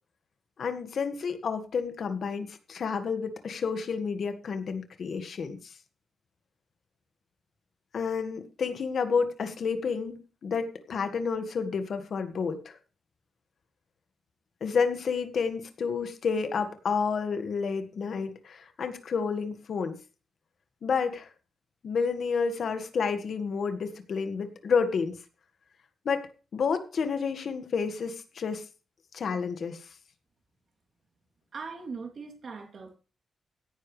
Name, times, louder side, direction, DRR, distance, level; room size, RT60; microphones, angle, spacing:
voice 1, 0.6-5.8 7.9-12.8 14.6-20.0 20.8-21.3 21.8-25.2 26.1-28.7 29.1-29.9, left 5 dB, 55° left, 1.8 m, -30 dB
voice 2, 31.5-33.0, right 4 dB, 50° right, 3.1 m, -40 dB
16.5 x 10.5 x 3.3 m
wide cardioid pair, 150°, 0 cm